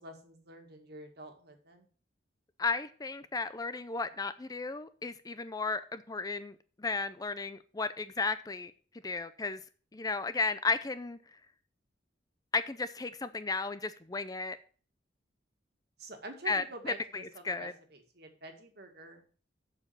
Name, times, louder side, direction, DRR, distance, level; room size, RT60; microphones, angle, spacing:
voice 1, 0.0-1.9 16.0-19.3, right 2 dB, 60° right, 2.0 m, -47 dB
voice 2, 2.6-8.7 9.0-9.6 9.9-11.2 12.5-14.6 16.5-17.7, left 4 dB, 20° left, 0.5 m, -34 dB
7.3 x 6.7 x 7.1 m
head